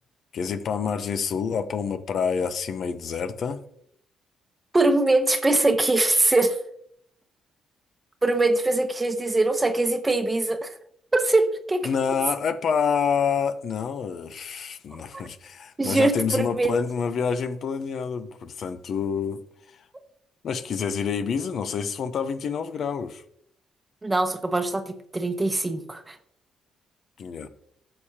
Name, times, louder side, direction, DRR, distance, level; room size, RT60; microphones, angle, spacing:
voice 1, 0.3-3.6 11.8-19.4 19.7-19.8 20.4-23.2 27.2-27.5, left 6 dB, 60° left, 11 dB, 0.7 m, -27 dB
voice 2, 4.7-6.6 8.2-10.7 11.1-11.9 15.1-15.2 15.8-16.7 24.0-26.2, right 2 dB, 20° right, 8 dB, 0.9 m, -22 dB
12.0 x 6.7 x 2.9 m, 0.69 s
cardioid pair, 90°, 0 cm